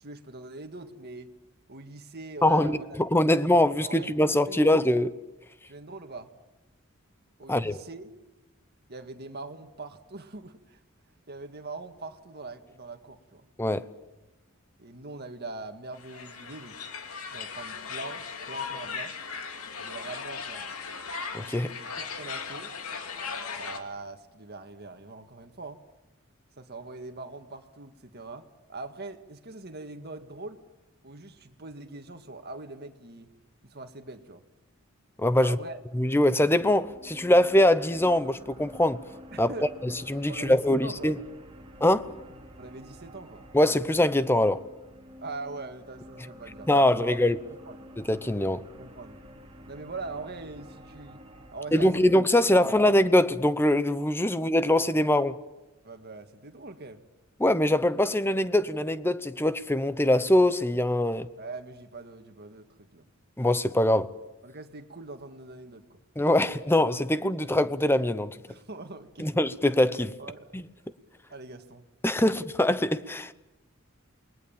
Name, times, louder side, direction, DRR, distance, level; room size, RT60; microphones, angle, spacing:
voice 1, 0.0-1.3 1.7-3.0 3.3-4.2 4.5-4.8 5.7-6.3 7.4-8.1 8.9-10.8 11.3-13.5 14.8-16.8 17.3-19.1 19.8-20.7 21.7-22.7 23.6-25.8 26.6-30.6 31.0-33.3 33.6-34.4 35.3-35.8 39.3-39.7 40.3-41.2 42.6-43.4 45.2-47.2 47.7-47.8 48.7-49.1 49.7-51.2 51.5-51.9 52.5-52.9 55.8-57.0 61.4-63.1 64.4-66.0 68.5-69.3 70.2-70.6 71.3-71.8 72.2-72.4, right 3 dB, 50° right, 1.9 m, -42 dB
voice 2, 2.4-5.1 7.5-7.8 13.6-13.9 21.3-21.7 35.2-35.6 35.9-39.0 39.4-39.5 39.8-41.2 41.8-42.1 43.5-44.6 46.7-47.4 48.0-48.6 51.7-55.4 57.4-61.3 63.4-64.1 66.2-68.4 69.2-70.2 70.5-70.6 72.0-73.3, left 1 dB, 10° left, 0.8 m, -23 dB
sound 1, 15.9-23.8, left 5 dB, 85° left, 2.7 m, -37 dB
sound 2, 35.4-52.4, equal, 25° right, 2.9 m, -50 dB
28.5 x 20.5 x 7.3 m
head